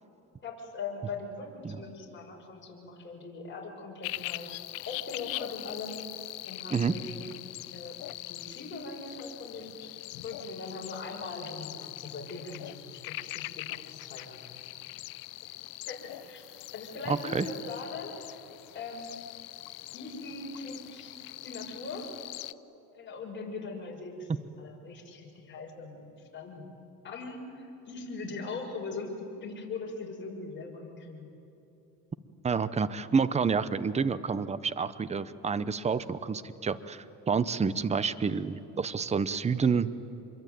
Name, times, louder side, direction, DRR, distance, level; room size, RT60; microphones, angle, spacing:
voice 1, 0.4-4.5 4.9-6.0 6.5-7.3 7.7-8.0 8.2-9.7 10.2-14.5 15.5-15.6 15.9-16.4 16.7-18.4 18.7-19.1 19.9-21.1 21.4-22.1 22.9-26.6 27.0-29.2 29.4-31.3, left 3 dB, 30° left, -1 dB, 6.1 m, -41 dB
sound 1, 4.0-22.5, left 19 dB, 65° left, 0.7 m, -42 dB
voice 2, 17.1-17.5 32.4-39.9, right 5 dB, 20° right, 15 dB, 0.8 m, -29 dB
26.5 x 22.5 x 9.3 m, 2.9 s
cardioid pair, 120°, 37 cm